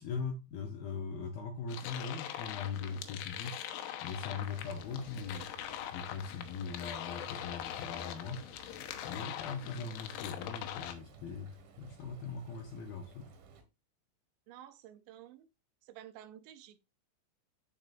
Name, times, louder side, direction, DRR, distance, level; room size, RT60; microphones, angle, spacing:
voice 1, 0.0-3.6 4.0-5.4 5.9-8.5 9.0-13.3, left 5 dB, 70° left, 2.3 m, -40 dB
sound 1, 1.7-10.9, left 11 dB, 90° left, 3.4 m, -42 dB
Frying (food), 4.4-13.6, right 4 dB, 55° right, 2.7 m, -57 dB
voice 2, 14.5-15.5 15.8-16.8, right 11 dB, 80° right, 2.8 m, -52 dB
14.5 x 4.8 x 2.5 m
omnidirectional pair, 5.4 m